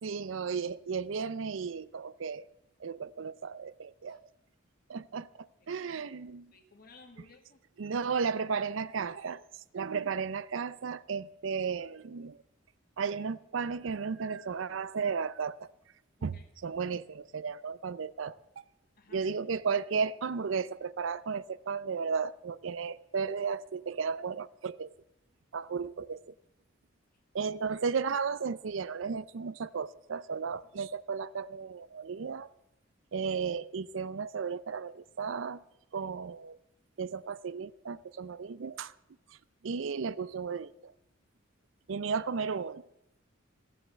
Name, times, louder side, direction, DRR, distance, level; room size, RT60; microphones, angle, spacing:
voice 1, 0.0-2.4 2.8-4.2 4.9-6.5 7.8-12.4 13.0-15.7 16.2-16.3 16.6-18.4 19.1-24.9 25.5-26.3 27.3-32.5 33.1-35.6 35.9-36.6 37.0-38.9 39.3-39.4 39.6-40.9 41.9-42.9, right 5 dB, 75° right, 17 dB, 0.5 m, -34 dB
voice 2, 6.5-7.6 16.2-16.5 19.0-19.3 35.9-36.1, left 3 dB, 50° left, 5 dB, 1.8 m, -57 dB
15.5 x 7.8 x 7.4 m, 0.86 s
head